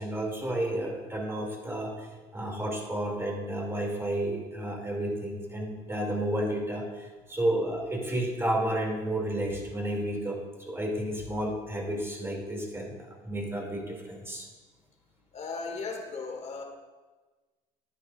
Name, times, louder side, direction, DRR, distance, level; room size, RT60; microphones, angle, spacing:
voice 1, 0.0-2.1 2.3-14.5, right 1 dB, 15° right, 0 dB, 2.9 m, -31 dB
voice 2, 15.3-16.6, left 4 dB, 45° left, 3 dB, 1.9 m, -36 dB
11.5 x 10.0 x 2.6 m, 1.3 s
supercardioid pair, 85°, 16 cm